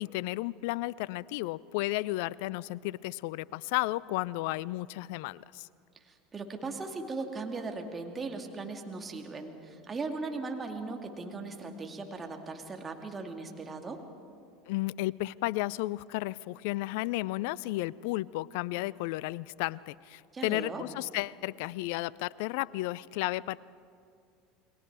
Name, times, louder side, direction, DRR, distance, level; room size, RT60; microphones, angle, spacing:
voice 1, 0.0-5.7 14.7-23.6, left 18 dB, 60° left, 23 dB, 0.4 m, -33 dB
voice 2, 6.0-14.0 20.3-20.8, right 3 dB, 25° right, 4 dB, 2.4 m, -38 dB
29.0 x 21.5 x 4.8 m, 2.4 s
figure-of-eight pair, 75°, 0 cm